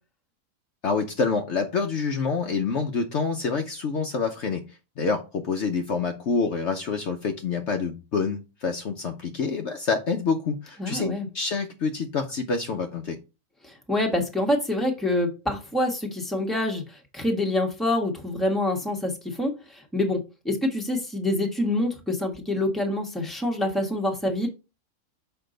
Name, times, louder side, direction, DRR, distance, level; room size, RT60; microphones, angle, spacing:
voice 1, 0.8-4.6 5.0-13.2, left 5 dB, 60° left, 1.0 m, -27 dB
voice 2, 10.8-11.3 13.6-24.5, left 1 dB, ahead, 1.2 m, -26 dB
6.7 x 5.0 x 3.9 m
omnidirectional pair, 1.5 m